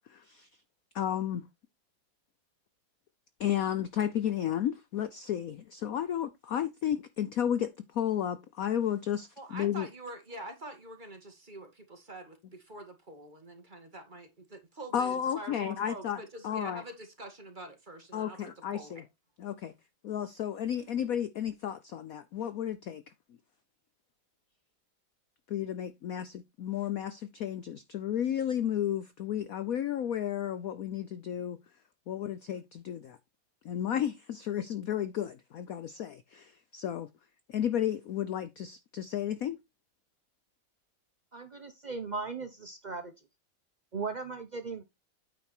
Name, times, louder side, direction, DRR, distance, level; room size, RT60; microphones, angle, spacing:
voice 1, 0.1-0.5 0.9-1.4 3.4-9.9 14.9-16.2 16.4-16.8 18.1-19.0 19.4-19.7 20.0-23.0 25.5-31.6 32.1-33.2 33.6-37.1 37.5-39.6, left 10 dB, 70° left, 0.8 m, -33 dB
voice 2, 9.4-19.0, right 1 dB, 25° right, 2.0 m, -45 dB
voice 3, 41.3-43.1 43.9-44.8, right 4 dB, 70° right, 0.4 m, -37 dB
9.0 x 5.2 x 4.4 m
omnidirectional pair, 2.2 m